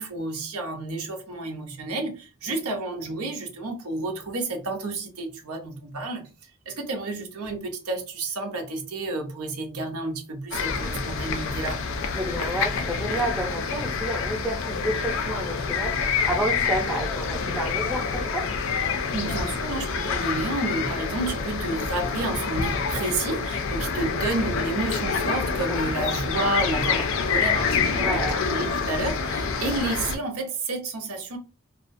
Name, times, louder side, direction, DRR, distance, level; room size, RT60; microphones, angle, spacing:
voice 1, 0.0-6.3 6.7-11.8 19.1-31.4, right 2 dB, 90° right, 0.6 m, -30 dB
sound 1, 10.5-30.2, left 5 dB, 65° left, 0.4 m, -27 dB
voice 2, 12.1-18.5 25.7-26.1 28.0-28.4, right 1 dB, 5° right, 0.5 m, -30 dB
2.3 x 2.1 x 2.5 m
head